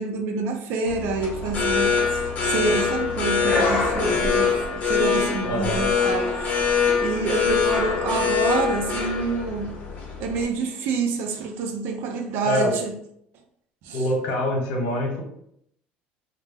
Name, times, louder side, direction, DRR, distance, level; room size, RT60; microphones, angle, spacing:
voice 1, 0.0-9.8 10.2-12.9 13.8-14.1, right 4 dB, 65° right, 0.5 m, -27 dB
airport small luggage conveyor alarm sound, 0.9-10.4, left 5 dB, 40° left, 0.7 m, -24 dB
voice 2, 5.4-5.8 12.4-12.8 13.9-15.2, left 1 dB, 80° left, 0.9 m, -25 dB
2.1 x 2.1 x 3.4 m
supercardioid pair, 110°, 4 cm